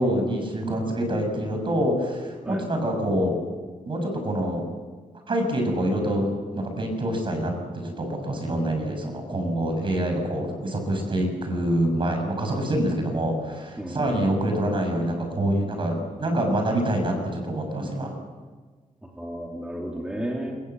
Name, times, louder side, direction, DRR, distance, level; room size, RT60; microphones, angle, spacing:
voice 1, 0.0-3.3 3.9-4.6 5.3-7.5 7.8-18.1, right 1 dB, 40° right, 4 dB, 6.5 m, -26 dB
voice 2, 13.8-14.2 19.2-20.6, right 1 dB, 5° right, -1 dB, 3.1 m, -32 dB
25.5 x 22.5 x 8.1 m, 1.4 s
wide cardioid pair, 165°, 13 cm